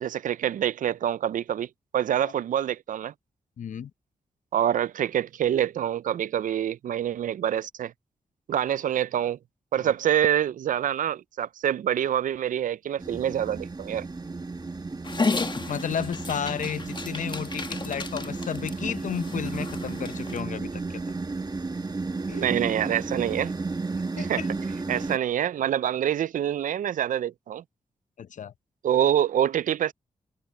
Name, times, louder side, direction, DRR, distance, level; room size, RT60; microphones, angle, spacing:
voice 1, 0.0-1.7 1.9-3.1 4.5-7.9 8.5-9.4 9.7-14.1 22.3-23.5 24.2-24.4 24.9-27.6 28.8-29.9, right 10 dB, 75° right, 0.5 m, -26 dB
voice 2, 3.6-3.9 9.8-9.9 15.7-21.0 22.3-22.4 24.2-24.5 28.2-28.5, left 8 dB, 70° left, 0.8 m, -33 dB
sound 1, 13.0-25.2, right 3 dB, 30° right, 1.4 m, -33 dB
Dog, 15.0-20.4, left 3 dB, 35° left, 1.5 m, -33 dB
cardioid pair, 50°, 14 cm